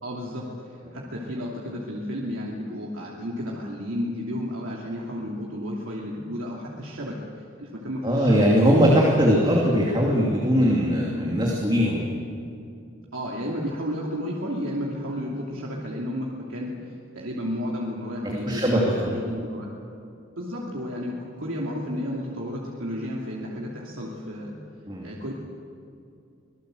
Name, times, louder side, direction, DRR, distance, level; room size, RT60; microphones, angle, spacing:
voice 1, 0.0-7.1 7.6-8.8 13.1-19.7 20.4-24.5 25.0-25.3, equal, 75° right, -3 dB, 2.8 m, -32 dB
voice 2, 8.0-12.1 18.2-19.1 24.9-25.1, equal, 20° right, -2 dB, 2.7 m, -20 dB
26.0 x 18.5 x 7.9 m, 2.6 s
head